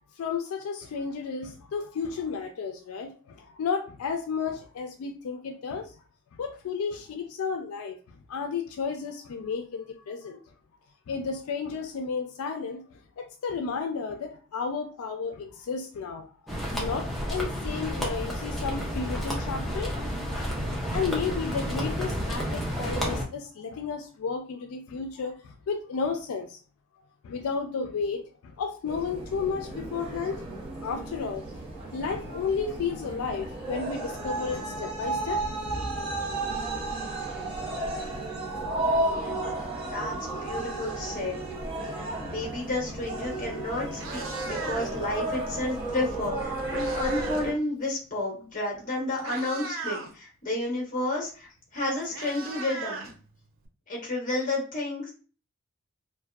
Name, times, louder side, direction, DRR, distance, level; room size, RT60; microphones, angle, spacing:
voice 1, 0.2-5.9 6.4-8.0 8.3-10.4 11.1-16.3 16.5-20.2 20.7-26.6 27.2-30.4 30.8-31.4 31.9-35.4, left 5 dB, 85° left, 0.3 m, -33 dB
sound 1, 16.5-23.2, equal, ahead, 0.4 m, -31 dB
sound 2, 28.8-47.5, right 2 dB, 25° right, 0.8 m, -33 dB
voice 2, 39.8-41.4 42.2-53.1 53.9-55.1, left 2 dB, 35° left, 0.8 m, -31 dB
Meow, 43.3-43.5 43.8-45.1 46.2-47.5 47.8-48.0 48.7-48.8 49.2-50.1 51.4-51.5 51.8-53.7, right 3 dB, 65° right, 0.4 m, -38 dB
2.5 x 2.1 x 2.3 m
head